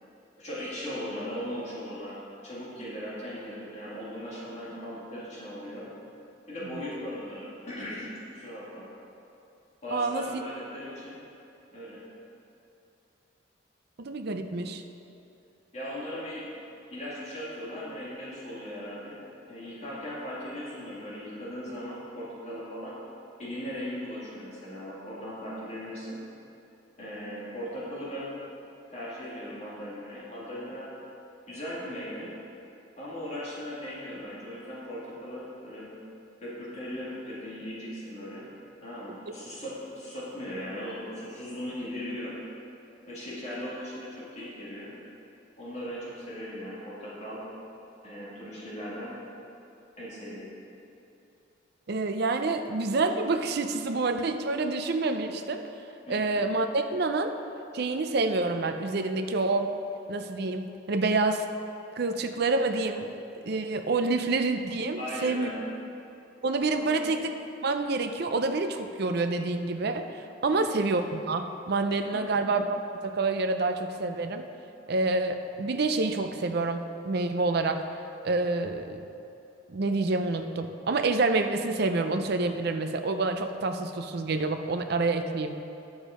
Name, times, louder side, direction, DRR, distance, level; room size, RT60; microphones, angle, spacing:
voice 1, 0.4-5.9 6.5-8.9 9.8-11.2 11.7-12.0 15.7-16.5 16.9-19.2 19.5-22.9 23.4-26.2 27.0-28.4 28.9-30.9 31.5-32.3 33.0-35.9 36.4-38.5 38.8-42.4 43.1-44.9 45.6-47.4 48.0-49.2 50.0-50.5 56.1-56.4 65.0-65.7 66.7-67.1 70.5-70.8 72.1-72.4, equal, 35° left, -8 dB, 2.1 m, -38 dB
voice 2, 9.9-10.3 14.0-14.8 51.9-55.6 56.1-57.3 57.7-59.7 60.1-61.5 62.0-63.1 63.3-65.5 66.4-67.3 67.6-74.5 74.9-77.8 78.2-79.0 79.7-85.6, right 3 dB, 55° right, 7 dB, 0.5 m, -28 dB
10.0 x 7.1 x 4.9 m, 2.8 s
head